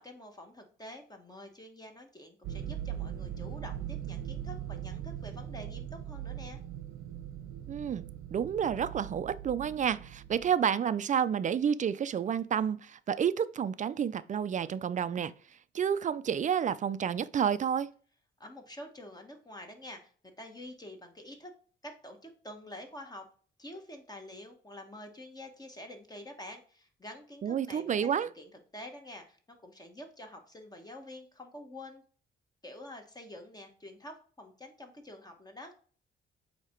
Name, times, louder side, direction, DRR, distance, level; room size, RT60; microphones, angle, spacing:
voice 1, 0.0-6.6 18.4-20.1 20.4-21.5 21.8-23.2 23.6-32.0 32.6-35.7, left 1 dB, 20° left, 1.1 m, -47 dB
sound 1, 2.4-10.5, right 11 dB, 90° right, 0.7 m, -40 dB
voice 2, 7.7-8.0 8.3-15.3 15.7-17.9 27.4-28.3, right 8 dB, 40° right, 0.4 m, -30 dB
8.1 x 2.9 x 4.4 m
cardioid pair, 90°, 20 cm